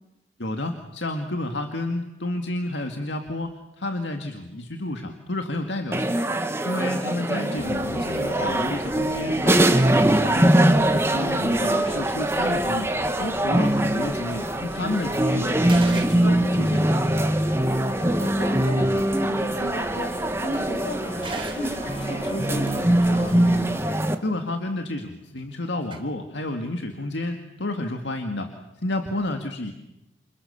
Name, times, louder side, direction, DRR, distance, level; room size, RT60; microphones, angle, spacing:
voice 1, 0.4-3.5 3.8-6.2 6.6-10.6 10.9-12.9 13.2-17.0 24.2-28.5 28.8-29.7, left 1 dB, 80° left, 5 dB, 2.1 m, -30 dB
sound 1, 5.9-24.2, right 1 dB, 15° right, 1.5 m, -22 dB
voice 2, 7.3-7.7 18.0-23.6, equal, 60° left, 4 dB, 6.3 m, -34 dB
sound 2, 7.6-23.9, left 1 dB, 30° left, 1.8 m, -41 dB
sound 3, 13.7-13.8 14.4-14.7 15.0-15.1 15.3-20.8 21.1-23.6 25.5-25.6 25.8-26.0, right 3 dB, 30° right, 3.5 m, -42 dB
28.5 x 27.5 x 7.1 m, 0.94 s
head